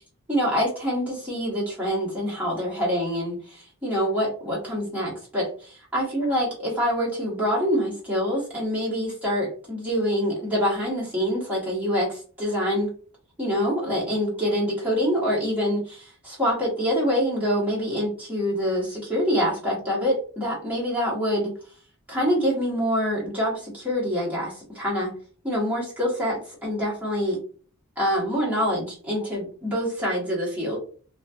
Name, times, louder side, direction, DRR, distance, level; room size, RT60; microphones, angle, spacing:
voice 1, 0.3-12.9 13.4-21.5 22.1-25.2 25.4-27.4 28.0-30.8, equal, 5° right, -6 dB, 1.0 m, -25 dB
2.5 x 2.3 x 2.2 m, 0.42 s
head